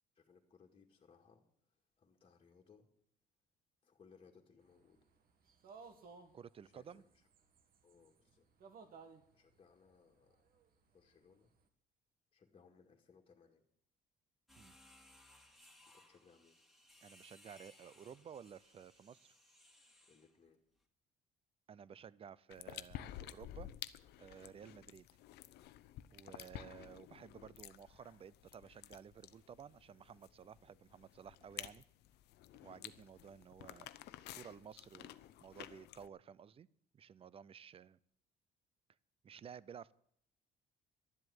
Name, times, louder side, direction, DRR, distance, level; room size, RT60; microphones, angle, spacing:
voice 1, 0.2-1.4 1.7-2.9 3.8-5.0 6.6-7.2 7.8-8.5 9.3-10.5 10.9-11.5 12.3-13.6 15.9-16.6 20.1-20.6, left 5 dB, 35° left, 1 dB, 2.0 m, -66 dB
sound 1, 4.7-11.5, right 5 dB, 60° right, 1.8 m, -58 dB
voice 2, 6.3-7.0 14.6-14.8 17.0-19.3 21.7-23.7 24.2-25.1 26.1-31.8 32.6-33.9 34.3-35.1 35.4-36.7 36.9-38.0 39.2-39.9, right 8 dB, 35° right, 21 dB, 0.5 m, -54 dB
sound 2, 14.5-20.3, left 1 dB, ahead, 2.5 m, -64 dB
Eating a chocolate coated ice cream, 22.5-36.1, left 13 dB, 80° left, 0.7 m, -52 dB
12.0 x 7.8 x 9.5 m, 0.66 s
cardioid pair, 110°, 17 cm